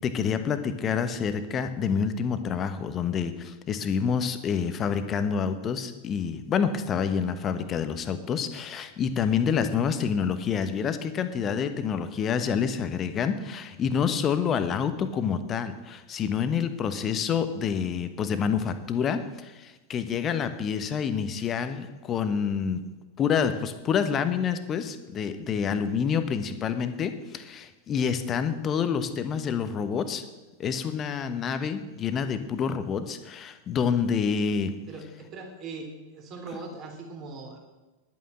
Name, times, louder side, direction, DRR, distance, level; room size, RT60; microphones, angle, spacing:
voice 1, 0.0-22.8 23.2-30.2 30.6-34.7, left 7 dB, 25° left, 10 dB, 1.2 m, -28 dB
voice 2, 34.9-37.6, right 3 dB, 35° right, 2 dB, 3.5 m, -40 dB
11.0 x 9.1 x 7.7 m, 1.1 s
figure-of-eight pair, 90°, 0 cm